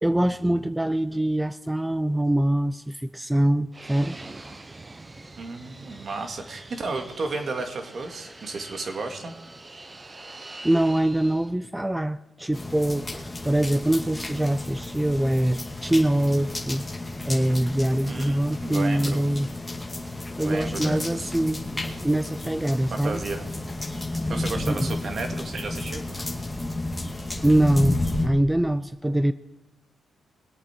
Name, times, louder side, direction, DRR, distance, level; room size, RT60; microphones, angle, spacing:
voice 1, 0.0-4.2 10.4-16.9 17.3-19.5 20.1-21.6 22.0-23.2 24.7-24.9 27.4-29.3, right 1 dB, 10° right, 0.4 m, -24 dB
Fixed-wing aircraft airplane, 3.7-11.5, right 2 dB, 25° right, 0.9 m, -44 dB
voice 2, 5.4-9.3 18.1-19.2 20.4-21.3 22.9-23.5 24.3-26.2, right 3 dB, 55° right, 2.2 m, -33 dB
sound 1, 12.5-28.3, left 2 dB, 15° left, 2.2 m, -32 dB
22.5 x 8.4 x 4.5 m
cardioid pair, 70°, 0 cm